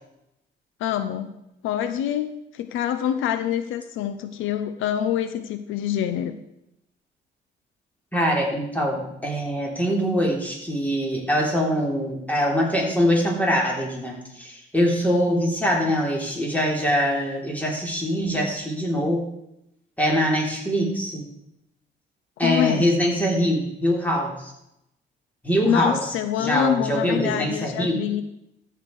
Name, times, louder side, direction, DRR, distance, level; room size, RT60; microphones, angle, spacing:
voice 1, 0.8-1.3 1.6-6.4 22.4-22.9 25.6-28.2, left 10 dB, 85° left, 10 dB, 0.7 m, -25 dB
voice 2, 8.1-19.2 20.0-21.2 22.4-24.5 25.4-26.0 26.4-28.0, equal, 10° left, -2 dB, 3.4 m, -23 dB
14.5 x 5.0 x 4.7 m, 0.83 s
cardioid pair, 90°, 20 cm